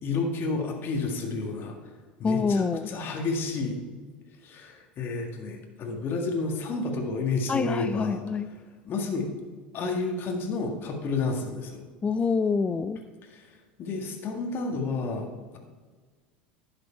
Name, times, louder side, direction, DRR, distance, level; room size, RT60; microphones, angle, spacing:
voice 1, 0.0-1.9 2.2-3.8 4.4-8.2 8.8-9.3 9.7-11.8 13.3-15.6, left 3 dB, 40° left, 2 dB, 1.7 m, -31 dB
voice 2, 2.2-2.9 7.5-8.5 12.0-13.0, left 5 dB, 20° left, 14 dB, 0.5 m, -26 dB
11.0 x 7.9 x 4.4 m, 1.4 s
hypercardioid pair, 80°, 5 cm